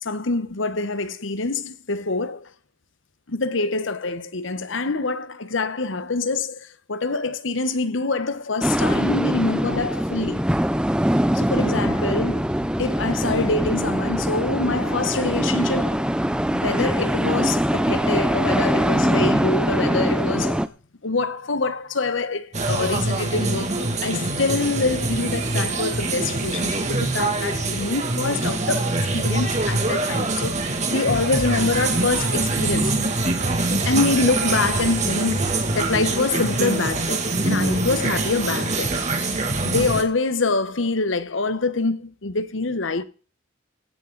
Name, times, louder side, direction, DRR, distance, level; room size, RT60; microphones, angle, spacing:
voice 1, 0.0-2.4 3.3-6.6 6.9-10.4 11.3-16.0 16.5-20.6 21.0-30.6 30.9-33.0 33.7-39.3 39.6-43.0, left 3 dB, 80° left, 1.1 m, -25 dB
sound 1, 8.6-20.7, equal, 5° right, 0.6 m, -22 dB
sound 2, 22.5-40.0, right 2 dB, 35° right, 2.4 m, -24 dB
16.5 x 12.0 x 4.0 m
head